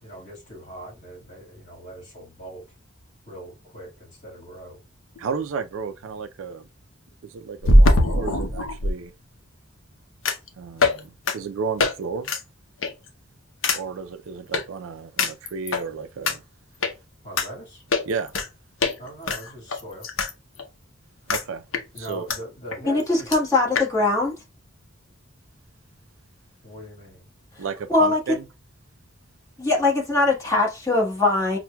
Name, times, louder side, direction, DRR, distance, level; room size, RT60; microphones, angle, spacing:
voice 1, 0.0-2.6 3.3-3.9 4.2-4.8 17.2-17.8 19.0-20.1 21.9-23.4 26.6-27.2, right 1 dB, 40° left, 1.7 m, -40 dB
sound 1, 5.2-5.3 7.6-8.9 10.3-10.5 10.8-11.0 11.3-11.4 11.8-11.9 12.2-12.4 12.8-13.1 13.6-13.8 14.5-14.6 15.2-15.8 16.3-16.4 16.8-16.9 17.4-17.5 17.9-18.5 18.8-18.9 19.3-20.3 20.6-20.7 21.3-21.4 21.7-22.4 22.7-22.8 23.0-23.1 23.3-23.4 23.8-23.9, left 2 dB, 70° left, 0.7 m, -21 dB
voice 2, 5.2-6.7 7.2-9.1 10.6-12.3 13.7-16.4 18.1-18.3 21.3-21.6 22.0-22.2 27.6-28.4, right 5 dB, 70° right, 0.4 m, -32 dB
voice 3, 22.8-24.3 27.9-28.2 29.6-31.6, left 2 dB, 15° left, 1.3 m, -21 dB
5.7 x 2.2 x 2.2 m
head